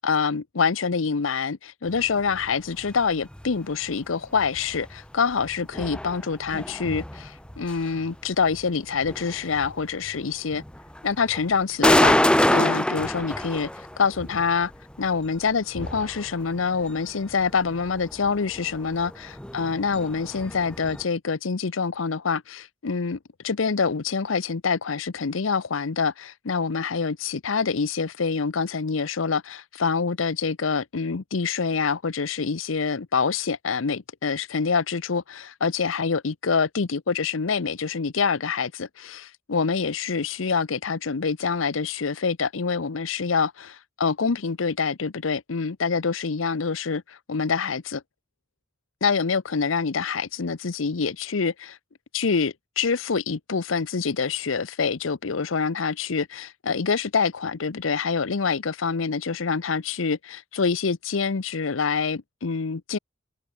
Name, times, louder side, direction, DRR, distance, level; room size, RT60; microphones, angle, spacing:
voice 1, 0.0-10.6 11.0-13.7 14.0-14.7 15.0-48.0 49.0-51.8 52.1-63.0, left 5 dB, 85° left, 0.7 m, -26 dB
sound 1, 1.9-21.0, left 1 dB, 5° left, 0.9 m, -29 dB
head